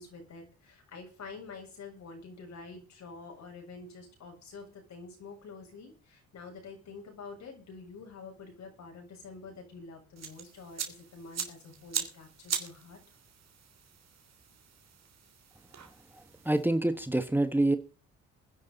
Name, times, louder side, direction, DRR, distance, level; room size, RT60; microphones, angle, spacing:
voice 1, 0.0-13.0, left 4 dB, 65° left, 2 dB, 7.4 m, -47 dB
sound 1, 10.2-16.6, right 8 dB, 60° right, 3.3 m, -41 dB
voice 2, 16.4-17.8, right 1 dB, 5° right, 9 dB, 1.4 m, -26 dB
22.5 x 10.5 x 4.1 m, 0.35 s
cardioid pair, 90°, 30 cm